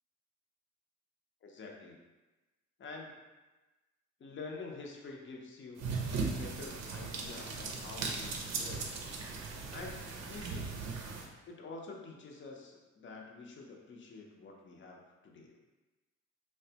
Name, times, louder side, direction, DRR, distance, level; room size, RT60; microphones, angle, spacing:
voice 1, 1.4-2.0 2.8-3.2 4.2-5.9 6.1-9.3 9.7-10.7 11.5-15.6, left 3 dB, 40° left, 0 dB, 0.6 m, -48 dB
sound 1, 5.8-11.3, right 4 dB, 60° right, 0.5 m, -38 dB
3.1 x 2.2 x 2.8 m, 1.2 s
cardioid pair, 90°, 30 cm